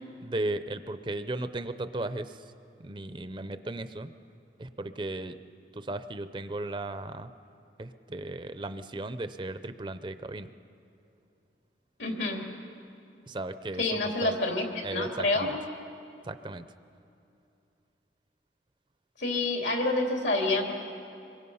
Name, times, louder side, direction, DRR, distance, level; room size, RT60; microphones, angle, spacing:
voice 1, 0.2-2.4 2.8-4.1 4.6-5.4 5.7-7.3 7.8-10.5 13.3-14.3 14.8-15.5 16.2-16.6, right 2 dB, 25° right, 11 dB, 0.5 m, -36 dB
voice 2, 12.0-12.4 13.8-15.5 19.2-20.7, left 2 dB, 80° left, 1 dB, 3.0 m, -28 dB
25.0 x 22.5 x 5.6 m, 2.6 s
head